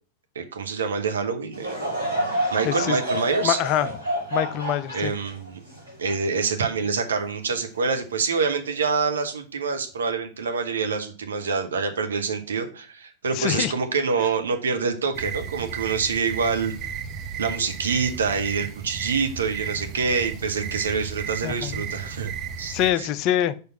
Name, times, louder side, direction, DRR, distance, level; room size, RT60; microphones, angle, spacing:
voice 1, 0.3-1.7 2.5-3.6 4.9-5.6 6.0-16.7 17.4-22.3 22.6-23.1, right 5 dB, 70° right, 6 dB, 1.0 m, -26 dB
Laughter / Crowd, 1.5-7.0 7.5-7.6 8.5-8.7, right 1 dB, 90° right, 2.7 m, -29 dB
voice 2, 2.3-3.0 3.4-3.9 4.3-5.1 13.4-13.7 21.4-21.8 22.7-23.5, left 11 dB, 40° left, 14 dB, 0.5 m, -25 dB
sound 1, 15.1-22.9, right 7 dB, 35° right, 0.8 m, -34 dB
5.0 x 4.6 x 5.6 m, 0.38 s
figure-of-eight pair, 90°, 0 cm